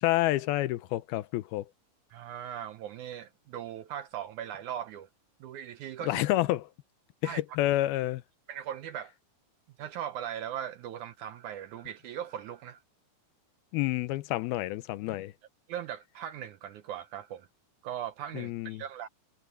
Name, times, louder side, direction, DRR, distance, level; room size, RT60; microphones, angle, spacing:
voice 1, 0.0-1.7 6.1-6.6 7.2-8.2 13.7-15.3 18.3-18.8, left 16 dB, 90° left, 2.7 m, -29 dB
voice 2, 2.1-5.1 5.4-6.2 7.2-7.4 8.5-9.1 9.8-12.8 15.7-17.5 17.8-19.1, right 10 dB, 75° right, 1.8 m, -39 dB
omnidirectional pair, 4.3 m